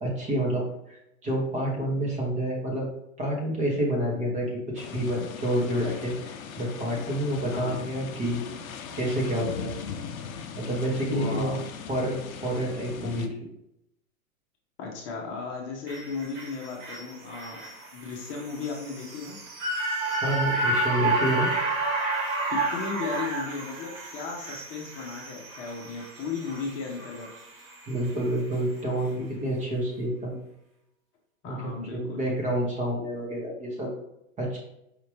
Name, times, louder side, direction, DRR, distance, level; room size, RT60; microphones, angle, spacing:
voice 1, 0.0-2.9 3.2-8.5 8.9-9.8 10.6-11.6 11.9-12.2 12.4-13.3 20.2-21.5 27.9-30.4 31.4-33.9 34.4-34.6, right 1 dB, 20° right, -2 dB, 1.1 m, -28 dB
sound 1, 4.8-13.3, left 6 dB, 80° left, 0.7 m, -39 dB
voice 2, 11.1-11.6 14.8-17.6 17.9-19.4 22.5-27.3 31.4-32.2, left 4 dB, 30° left, -2 dB, 0.9 m, -35 dB
sound 2, 15.9-28.2 28.6-28.7, right 2 dB, 40° right, 1.3 m, -31 dB
4.9 x 2.7 x 3.3 m, 0.82 s
hypercardioid pair, 125°, 41 cm